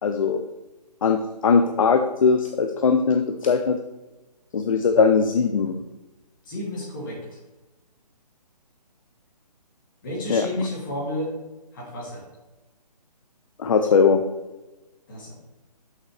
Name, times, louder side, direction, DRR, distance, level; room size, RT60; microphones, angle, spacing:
voice 1, 0.0-0.4 1.0-3.8 4.5-5.8 10.3-10.5 13.6-14.2, left 5 dB, 50° left, 7 dB, 0.5 m, -20 dB
voice 2, 6.4-7.4 10.0-11.3 11.7-12.3 15.1-15.3, left 1 dB, 30° left, -4 dB, 2.3 m, -31 dB
6.4 x 5.9 x 3.2 m, 1.1 s
hypercardioid pair, 165°, 21 cm